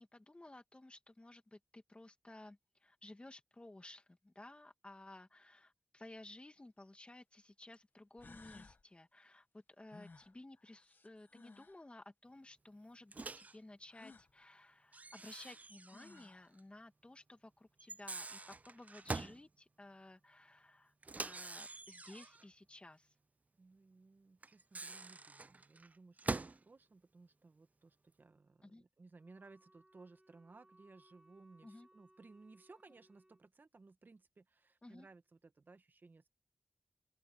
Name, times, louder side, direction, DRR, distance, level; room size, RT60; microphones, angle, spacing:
voice 1, 0.0-23.1 28.6-28.8 31.6-31.9 34.8-35.1, left 2 dB, 30° left, 2.4 m, -56 dB
sound 1, 6.7-6.8 7.7-7.8 8.2-8.8 9.9-11.9 13.9-14.3 15.5-15.6 15.9-16.5, left 3 dB, 60° left, 1.8 m, -59 dB
Microwave oven, 13.1-13.6 14.9-16.3 16.6-16.7 17.8-19.4 21.0-22.5 24.4-26.6, right 3 dB, 40° right, 0.5 m, -45 dB
voice 2, 23.6-36.3, right 3 dB, 60° right, 1.5 m, -61 dB
Wind instrument woodwind instrument, 29.1-33.5, right 1 dB, 15° right, 2.6 m, -68 dB
open air
cardioid pair, 45°, 4 cm